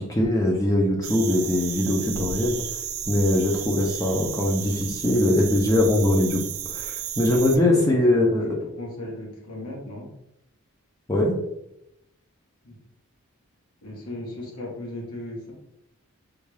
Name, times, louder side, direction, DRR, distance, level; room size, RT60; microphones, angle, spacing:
voice 1, 0.0-2.8 3.1-6.4 6.7-8.5 11.1-11.4, left 1 dB, 15° left, -1 dB, 0.4 m, -22 dB
sound 1, 1.0-7.6, right 8 dB, 65° right, 0.4 m, -33 dB
voice 2, 7.5-10.1 12.6-12.8 13.8-15.5, left 1 dB, 90° left, -3 dB, 1.2 m, -36 dB
3.5 x 2.3 x 3.2 m, 0.82 s
head